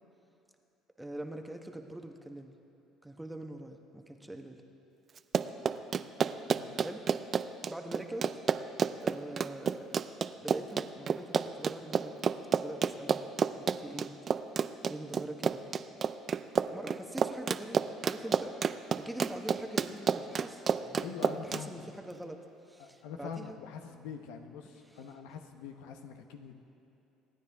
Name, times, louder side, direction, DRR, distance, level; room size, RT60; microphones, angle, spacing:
voice 1, 1.0-2.5 3.0-4.6 6.8-7.4 7.7-8.3 9.0-9.9 10.4-12.2 12.6-13.3 13.6-14.2 14.9-15.6 15.9-16.0 16.7-18.6 19.0-21.1 21.4-22.4 22.7-23.6, right 1 dB, 5° right, 4 dB, 1.1 m, -43 dB
Run, 5.2-21.6, right 6 dB, 40° right, 0.5 m, -30 dB
voice 2, 21.0-21.8 22.8-26.6, left 6 dB, 85° left, 6 dB, 1.0 m, -44 dB
26.0 x 9.8 x 3.6 m, 2.9 s
supercardioid pair, 85°, 0 cm